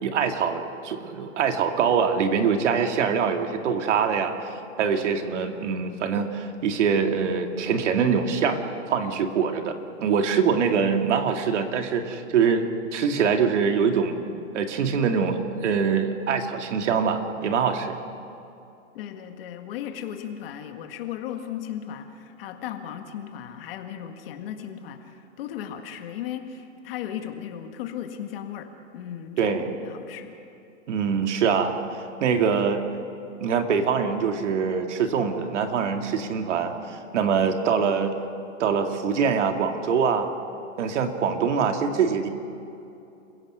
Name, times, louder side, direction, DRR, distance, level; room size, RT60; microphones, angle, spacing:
voice 1, 0.0-4.5 4.8-8.6 8.9-14.1 14.5-18.0 29.4-29.7 30.9-32.8 33.4-38.2 38.6-40.3 40.8-42.3, right 6 dB, 65° right, 5 dB, 2.3 m, -24 dB
voice 2, 18.9-30.4, left 9 dB, 45° left, 6 dB, 1.9 m, -36 dB
28.5 x 16.5 x 6.2 m, 2.8 s
hypercardioid pair, 150°, 39 cm